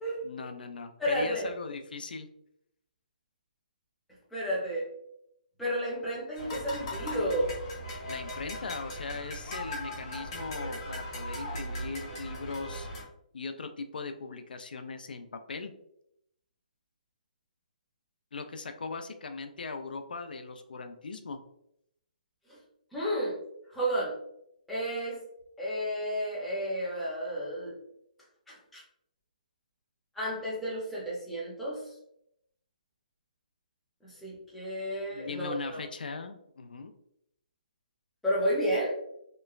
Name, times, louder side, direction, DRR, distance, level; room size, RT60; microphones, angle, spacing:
voice 1, 0.2-2.3 8.1-12.9 13.3-15.7 18.3-21.4 35.1-36.9, left 4 dB, 85° left, 8 dB, 0.3 m, -39 dB
voice 2, 1.0-1.5 4.3-4.9 5.6-7.5 22.5-22.6 22.9-23.4 23.7-24.1 24.7-25.2 25.6-27.7 28.5-28.8 30.1-31.8 34.0-35.8 38.2-39.0, equal, ahead, -8 dB, 0.5 m, -31 dB
sound 1, 6.4-13.0, left 1 dB, 30° left, 0.8 m, -38 dB
2.9 x 2.1 x 2.3 m, 0.76 s
hypercardioid pair, 170°, 5 cm